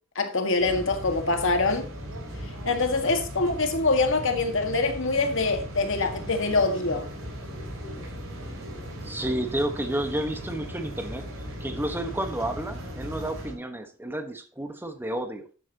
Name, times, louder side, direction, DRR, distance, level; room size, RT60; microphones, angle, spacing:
voice 1, 0.2-1.9 2.7-7.1, left 3 dB, 65° left, 1.8 m, -24 dB
sound 1, 0.6-13.5, equal, 85° right, 4.6 m, -38 dB
voice 2, 9.0-11.3 11.6-15.5, right 1 dB, 10° right, 1.3 m, -31 dB
12.0 x 8.6 x 2.9 m
head